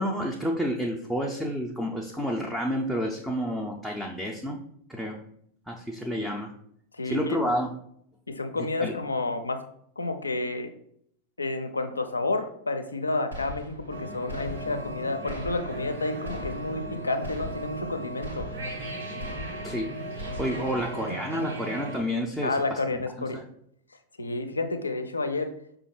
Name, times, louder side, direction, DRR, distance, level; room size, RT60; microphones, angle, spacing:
voice 1, 0.0-4.6 4.9-5.2 5.7-6.5 7.0-7.7 8.8-8.9 19.6-19.9 20.4-22.8 23.3-23.4, equal, ahead, -1 dB, 0.4 m, -29 dB
voice 2, 6.9-7.4 8.3-9.6 10.0-10.7 11.4-18.5 21.1-21.5 22.4-23.4 24.2-25.5, left 3 dB, 80° left, 7 dB, 0.4 m, -30 dB
sound 1, 13.3-14.0 14.3-15.0 15.3-16.0 16.2-16.9 17.2-17.9 18.2-18.9 19.2-19.9 20.2-20.9, left 1 dB, 90° right, 1.1 m, -40 dB
radiation alert, 13.9-22.0, right 1 dB, 70° right, 1.0 m, -37 dB
4.9 x 2.3 x 3.1 m, 0.68 s
figure-of-eight pair, 90°, 0 cm